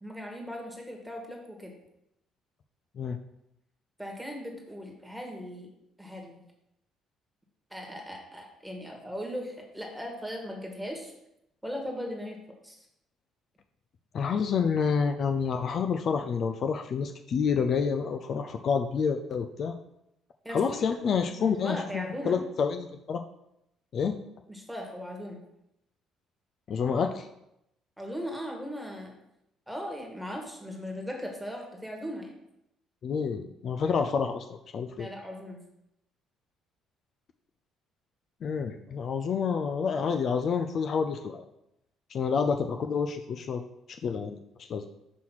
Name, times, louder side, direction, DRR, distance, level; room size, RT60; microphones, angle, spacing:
voice 1, 0.0-1.7 4.0-5.7 6.0-6.4 7.7-11.1 11.6-12.4 12.6-12.8 20.4-21.0 21.4-22.4 24.5-25.4 28.0-29.1 29.7-32.3 35.0-35.6, equal, ahead, 1 dB, 1.5 m, -38 dB
voice 2, 14.1-19.8 20.5-23.2 23.9-24.2 26.7-27.3 33.0-35.1 38.4-41.5 42.1-43.6 43.9-44.9, left 6 dB, 55° left, 6 dB, 0.4 m, -28 dB
6.1 x 3.0 x 5.7 m, 0.83 s
cardioid pair, 95°, 0 cm